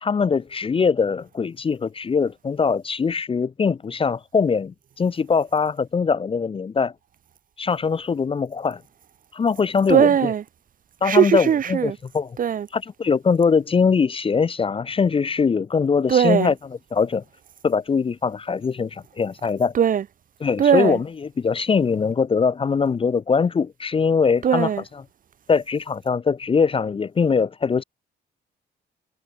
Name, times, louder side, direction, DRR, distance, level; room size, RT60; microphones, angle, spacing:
voice 1, 0.0-6.9 7.6-8.8 9.3-10.1 11.0-12.3 12.7-16.5 16.9-17.2 17.6-19.7 20.4-21.0 21.4-24.7 25.5-27.8, left 5 dB, 25° left, 0.5 m, -22 dB
voice 2, 9.9-10.4 11.0-12.0 12.4-12.7 16.1-16.5 19.7-20.1 20.6-21.0 24.4-24.8, right 8 dB, 45° right, 0.6 m, -19 dB
cardioid pair, 90°, 20 cm